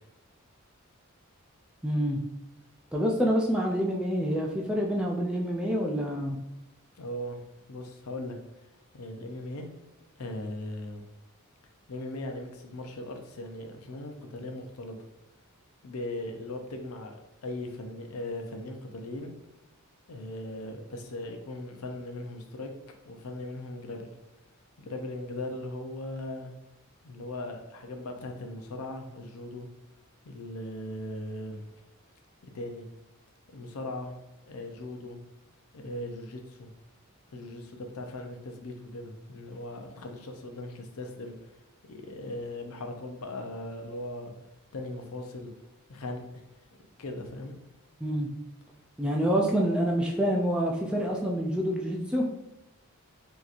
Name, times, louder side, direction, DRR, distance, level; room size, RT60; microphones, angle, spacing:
voice 1, 1.8-2.2 2.9-6.4 48.0-48.3 49.0-52.2, equal, 5° right, -2 dB, 0.3 m, -27 dB
voice 2, 7.0-7.4 7.7-8.4 8.9-9.7 10.2-11.1 11.9-15.1 15.8-17.1 17.4-19.3 20.1-22.7 23.0-24.1 24.8-26.5 27.0-29.7 30.2-31.7 32.4-32.9 33.5-34.2 34.5-35.2 35.7-36.7 37.3-41.4 41.9-44.3 44.7-45.5 45.9-46.2 47.0-47.6, left 1 dB, 75° left, 4 dB, 0.6 m, -38 dB
3.9 x 2.9 x 2.5 m, 0.95 s
head